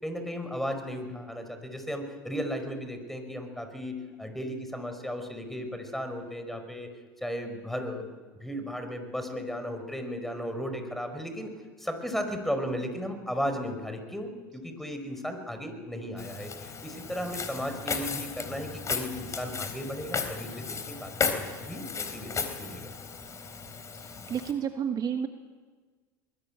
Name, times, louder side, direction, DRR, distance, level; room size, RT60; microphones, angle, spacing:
voice 1, 0.0-6.9 7.2-8.1 8.4-11.5 11.8-22.8, equal, ahead, 7 dB, 5.2 m, -35 dB
Walk footsteps, 16.2-24.5, left 5 dB, 30° left, 3.7 m, -35 dB
voice 2, 23.9-25.3, right 8 dB, 40° right, 7 dB, 1.5 m, -31 dB
23.0 x 21.0 x 8.8 m, 1.4 s
hypercardioid pair, 80°, 10 cm